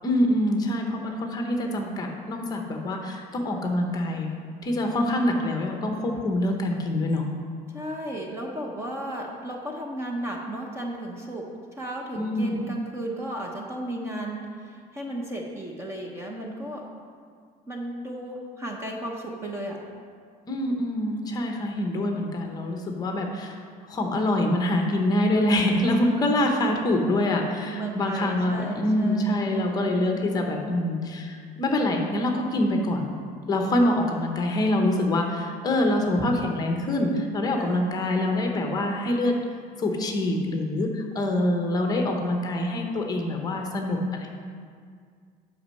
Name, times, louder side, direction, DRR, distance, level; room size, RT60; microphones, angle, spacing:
voice 1, 0.0-4.3 4.6-7.3 12.1-12.6 20.5-23.6 23.9-33.1 33.5-39.3 39.8-44.3, left 1 dB, 20° left, 2 dB, 0.8 m, -25 dB
voice 2, 7.7-11.5 11.8-16.9 17.7-19.9 27.6-30.0 37.5-37.9, right 1 dB, 15° right, 0 dB, 0.6 m, -34 dB
8.4 x 5.3 x 6.3 m, 2.1 s
cardioid pair, 175°, 18 cm